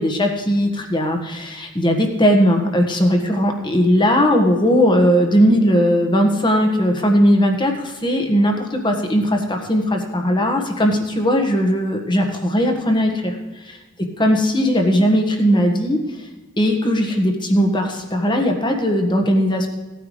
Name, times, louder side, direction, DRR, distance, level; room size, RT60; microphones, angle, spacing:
voice 1, 0.0-13.3 13.6-16.3 16.6-19.7, equal, 25° left, 3 dB, 1.5 m, -18 dB
17.0 x 9.4 x 3.3 m, 1.2 s
head